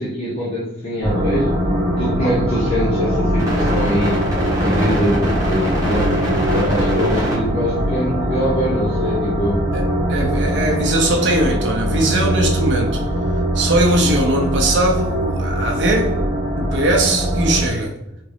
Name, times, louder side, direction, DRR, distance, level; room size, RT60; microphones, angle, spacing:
voice 1, 0.0-1.6 2.0-4.3 4.6-6.1 6.5-9.6, equal, 35° left, 0.7 m, -23 dB
sound 1, 1.0-17.7, equal, 20° right, 1.2 m, -21 dB
voice 2, 10.1-13.0 13.5-16.1 16.6-17.9, right 1 dB, 85° right, 0.6 m, -20 dB
3.6 x 2.5 x 3.3 m
head